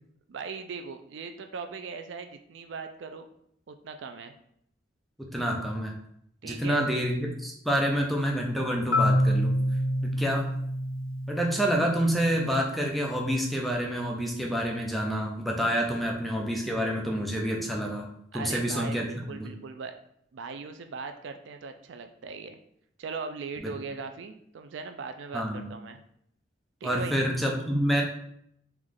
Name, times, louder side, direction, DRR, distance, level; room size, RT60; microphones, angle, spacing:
voice 1, 0.3-3.3 3.7-4.3 6.4-6.8 18.3-20.0 20.3-22.6 23.0-26.0 26.8-27.2, right 5 dB, 70° right, 7 dB, 0.4 m, -39 dB
voice 2, 5.2-5.9 6.4-9.5 10.0-10.5 11.3-18.1 18.3-19.5 23.6-23.7 25.3-25.7 26.8-28.0, equal, ahead, 0 dB, 0.6 m, -28 dB
Marimba xylophone, 8.9-12.8, equal, 90° left, 0.5 m, -27 dB
3.4 x 3.1 x 3.7 m, 0.70 s
head